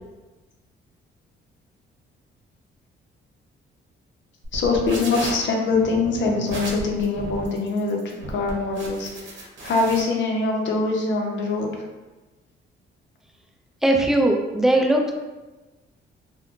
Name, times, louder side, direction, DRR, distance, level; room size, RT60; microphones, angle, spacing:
sound 1, 4.4-10.0, right 2 dB, 70° right, 0.8 m, -35 dB
voice 1, 4.5-9.1 9.4-11.8, left 3 dB, 70° left, 1 dB, 0.6 m, -23 dB
voice 2, 13.8-15.1, right 1 dB, ahead, 1 dB, 0.4 m, -19 dB
2.2 x 2.2 x 3.7 m, 1.2 s
cardioid pair, 90°, 20 cm